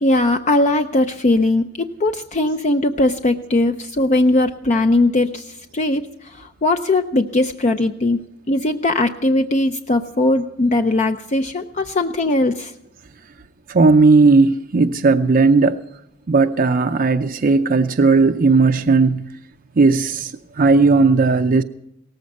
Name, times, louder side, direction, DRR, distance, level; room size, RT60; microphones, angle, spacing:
voice 1, 0.0-8.2 8.5-12.7, left 2 dB, 35° left, 0.6 m, -19 dB
voice 2, 13.7-15.8 16.3-19.2 19.8-20.3 20.6-21.6, right 3 dB, 45° right, 0.5 m, -15 dB
18.0 x 14.5 x 5.4 m
head